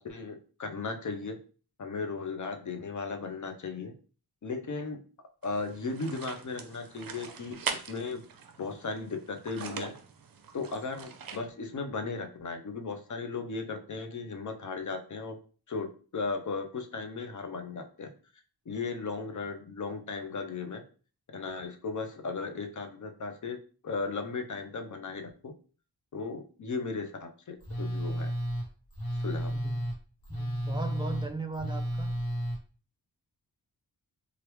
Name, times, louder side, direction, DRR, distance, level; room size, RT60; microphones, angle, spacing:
voice 1, 0.0-1.4 1.8-3.9 4.4-5.0 5.4-8.2 8.6-9.9 10.5-15.4 15.7-18.1 18.7-20.8 21.3-23.6 23.8-25.5 26.1-28.3 29.1-29.5, left 4 dB, 50° left, 6 dB, 0.6 m, -36 dB
sound 1, 5.4-11.4, right 6 dB, 60° right, 0.6 m, -41 dB
Telephone, 27.6-32.6, equal, 65° left, 1.2 m, -33 dB
voice 2, 29.5-29.8 30.3-32.1, right 3 dB, 15° right, 4 dB, 0.4 m, -37 dB
3.3 x 2.4 x 3.0 m, 0.39 s
wide cardioid pair, 80°, 39 cm